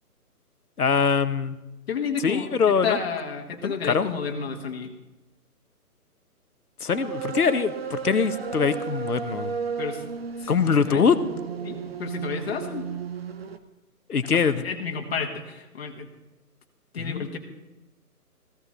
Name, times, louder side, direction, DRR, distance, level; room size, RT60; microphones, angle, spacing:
voice 1, 0.8-1.6 2.2-3.0 3.6-4.1 6.8-9.5 10.5-11.2 14.1-14.6 17.0-17.3, left 6 dB, 70° left, 12 dB, 1.2 m, -23 dB
voice 2, 1.9-2.5 2.8-4.9 9.8-10.1 10.4-10.5 10.8-11.0 11.6-12.9 14.3-16.1 16.9-17.4, left 6 dB, 40° left, 3 dB, 1.9 m, -31 dB
sound 1, 6.9-13.6, right 6 dB, 40° right, 0.8 m, -33 dB
16.0 x 14.0 x 4.1 m, 1.0 s
figure-of-eight pair, 150°, 47 cm